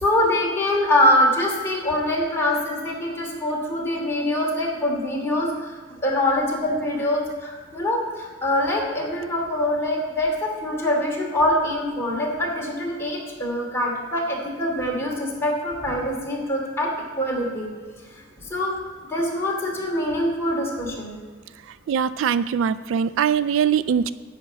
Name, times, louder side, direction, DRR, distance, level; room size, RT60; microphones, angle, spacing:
voice 1, 0.0-5.5 6.0-16.9 17.2-17.7 18.5-18.8 19.1-21.1, left 1 dB, 15° left, -3 dB, 2.6 m, -24 dB
voice 2, 21.7-24.1, right 7 dB, 70° right, 16 dB, 0.3 m, -22 dB
11.0 x 5.2 x 8.1 m, 1.5 s
head